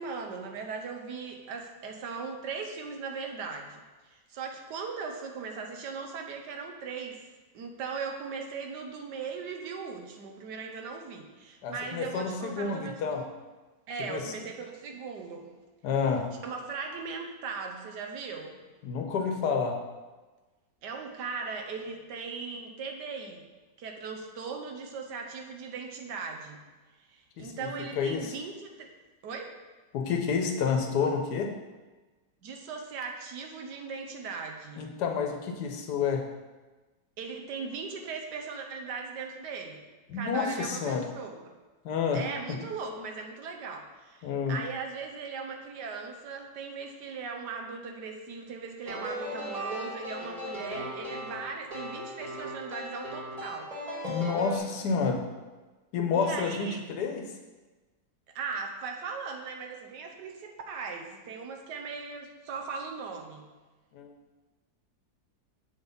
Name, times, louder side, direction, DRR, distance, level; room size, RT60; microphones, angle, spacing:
voice 1, 0.0-7.2 7.5-13.3 13.9-15.5 16.4-18.6 20.8-23.4 23.8-26.6 27.1-28.9 29.2-29.5 32.4-34.8 37.2-39.8 40.1-41.4 42.1-53.7 56.1-56.8 58.3-63.4, right 5 dB, 80° right, 3 dB, 1.4 m, -38 dB
voice 2, 11.6-13.3 14.1-14.4 15.8-16.3 18.8-19.8 27.4-28.3 29.9-31.5 34.8-36.3 40.1-41.1 41.8-42.6 44.2-44.6 54.0-55.3 55.9-57.3 63.9-64.1, left 5 dB, 75° left, 3 dB, 1.3 m, -29 dB
sound 1, 48.9-54.6, equal, 20° right, 1.8 m, -37 dB
7.0 x 4.1 x 5.2 m, 1.2 s
omnidirectional pair, 1.8 m